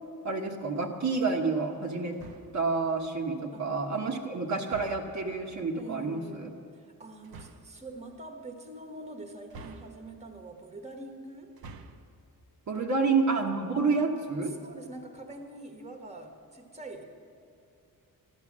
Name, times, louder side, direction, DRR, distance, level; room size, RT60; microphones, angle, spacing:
voice 1, 0.2-2.2 2.5-6.5 12.7-14.5, right 4 dB, 50° right, 0 dB, 1.3 m, -29 dB
sound 1, 2.1-2.7 4.7-5.3 7.2-7.8 9.5-10.3 11.5-12.2, right 3 dB, 75° right, 1.0 m, -47 dB
voice 2, 5.7-6.4 6.7-11.6 12.7-12.8 14.4-17.0, right 2 dB, 20° right, 4 dB, 1.5 m, -44 dB
14.5 x 12.0 x 7.4 m, 2.5 s
wide cardioid pair, 140°, 36 cm